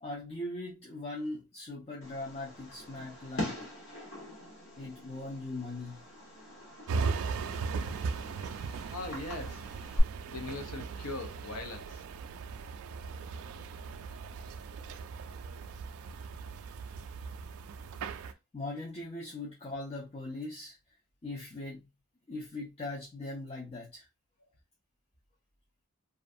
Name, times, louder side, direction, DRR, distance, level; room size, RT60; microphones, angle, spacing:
voice 1, 0.0-3.6 4.8-6.0 18.5-20.8 21.2-21.9 22.3-24.1, left 2 dB, 25° left, 0.5 m, -40 dB
Fireworks, 2.0-10.0, equal, 60° left, 1.2 m, -40 dB
sound 1, 6.9-18.3, right 4 dB, 75° right, 0.3 m, -38 dB
voice 2, 8.9-9.6 10.3-12.0, left 3 dB, 85° left, 0.7 m, -40 dB
2.5 x 2.3 x 2.5 m
head